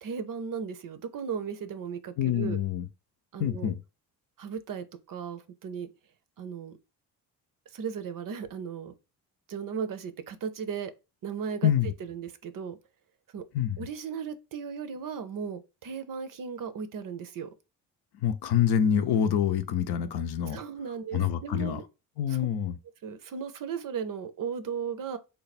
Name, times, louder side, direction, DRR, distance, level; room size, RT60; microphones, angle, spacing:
voice 1, 0.0-2.6 3.3-3.7 4.4-5.9 6.4-6.8 7.7-8.9 9.5-10.9 11.2-12.8 13.3-13.4 13.8-17.5 20.5-21.8 22.3-22.5 23.0-25.2, right 6 dB, 50° right, 0.6 m, -36 dB
voice 2, 2.2-2.9 3.4-3.8 11.6-11.9 13.5-13.8 18.2-20.6 21.1-21.8 22.2-22.7, left 9 dB, 60° left, 0.6 m, -26 dB
3.3 x 2.2 x 4.1 m
supercardioid pair, 60°, 44 cm